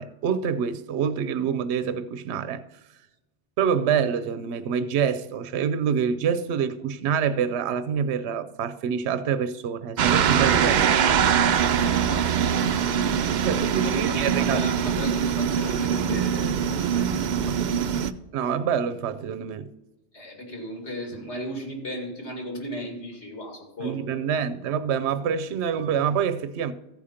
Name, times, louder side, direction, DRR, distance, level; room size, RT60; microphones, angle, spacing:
voice 1, 0.0-2.6 3.6-11.0 13.4-14.6 17.5-17.6 18.3-19.7 23.8-26.7, right 7 dB, 75° right, 0.9 m, -26 dB
sound 1, 10.0-18.1, right 8 dB, 55° right, 0.5 m, -23 dB
voice 2, 13.5-17.6 20.1-24.2, equal, 85° left, 2.7 m, -36 dB
14.5 x 5.0 x 5.6 m
omnidirectional pair, 1.1 m